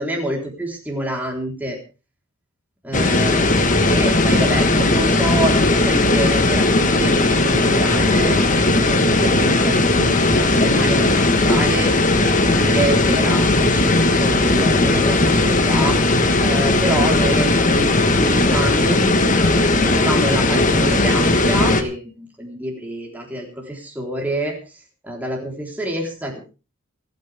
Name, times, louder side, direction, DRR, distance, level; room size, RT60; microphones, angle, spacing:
voice 1, 0.0-1.8 2.8-8.4 8.8-11.9 12.4-16.0 16.4-19.0 19.8-24.5 25.0-26.5, right 1 dB, 10° right, 0 dB, 3.8 m, -27 dB
sound 1, 2.9-21.8, left 2 dB, 35° left, 1.4 m, -17 dB
27.5 x 9.6 x 3.5 m, 0.34 s
head